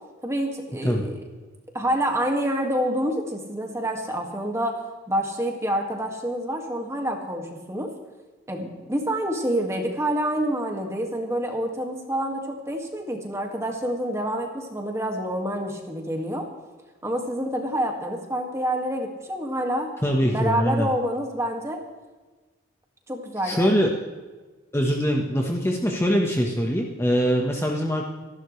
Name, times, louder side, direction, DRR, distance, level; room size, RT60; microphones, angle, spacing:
voice 1, 0.2-1.2 1.7-4.7 5.1-7.9 8.5-16.5 17.0-19.9 20.3-21.8 23.1-23.7, right 1 dB, 15° right, 2 dB, 2.1 m, -27 dB
voice 2, 20.0-20.9 23.4-23.9 24.7-28.1, equal, 15° left, 0 dB, 1.3 m, -23 dB
27.0 x 12.0 x 3.3 m, 1.3 s
head